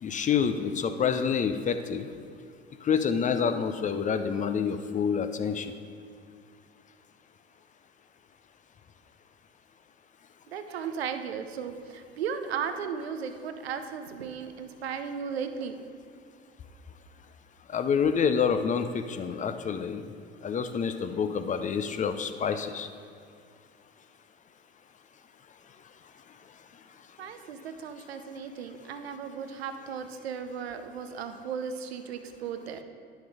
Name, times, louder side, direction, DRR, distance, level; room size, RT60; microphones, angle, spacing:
voice 1, 0.0-2.1 2.8-5.7 17.7-20.0 20.4-22.9, left 6 dB, 25° left, 9 dB, 0.5 m, -27 dB
voice 2, 10.5-15.8 27.2-32.8, right 7 dB, 75° right, 8 dB, 0.7 m, -36 dB
10.0 x 6.3 x 4.9 m, 2.3 s
figure-of-eight pair, 65°, 32 cm